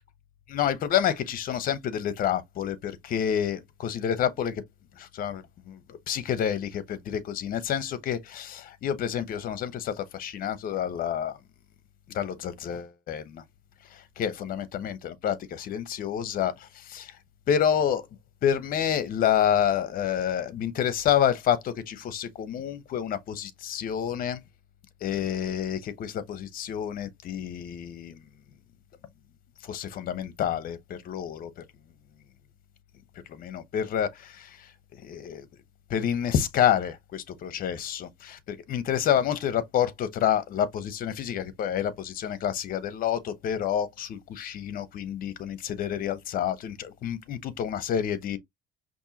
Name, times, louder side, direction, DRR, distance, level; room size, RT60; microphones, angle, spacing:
voice 1, 0.5-4.6 5.0-11.4 12.1-13.4 13.9-17.1 17.5-18.1 18.4-24.4 25.0-28.2 29.6-31.5 33.3-34.7 35.0-35.5 35.9-48.4, left 9 dB, 50° left, 0.9 m, -28 dB
5.4 x 2.6 x 2.8 m
cardioid pair, 125°, 18 cm